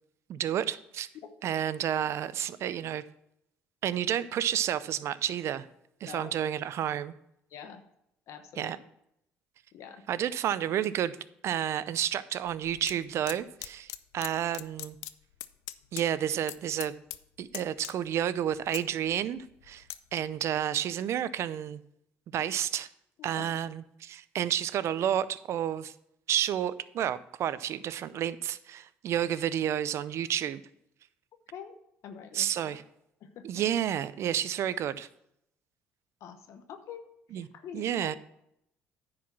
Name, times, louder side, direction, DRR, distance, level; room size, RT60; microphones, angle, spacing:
voice 1, 0.3-1.1 1.4-3.0 3.8-5.7 6.0-7.1 8.6-8.8 10.1-11.2 11.4-15.0 15.9-17.0 17.4-19.8 20.1-21.8 22.3-22.9 23.2-25.9 26.3-30.6 32.3-32.8 33.4-35.1 37.3-37.5 37.7-38.2, right 10 dB, 60° right, 16 dB, 0.5 m, -30 dB
voice 2, 6.0-6.4 7.5-7.8 8.3-8.8 9.7-10.0 23.2-23.5 31.5-31.7 32.0-32.8 33.2-33.5 36.2-37.1 37.3-38.1, left 7 dB, 65° left, 7 dB, 1.0 m, -46 dB
sound 1, 12.5-12.9 13.3-14.3 14.5-16.1 16.3-16.6 16.8-17.2 17.5-18.2 18.5-20.0 20.5-20.6, left 16 dB, 85° left, 0.4 m, -40 dB
10.0 x 4.8 x 5.9 m, 0.78 s
supercardioid pair, 75°, 5 cm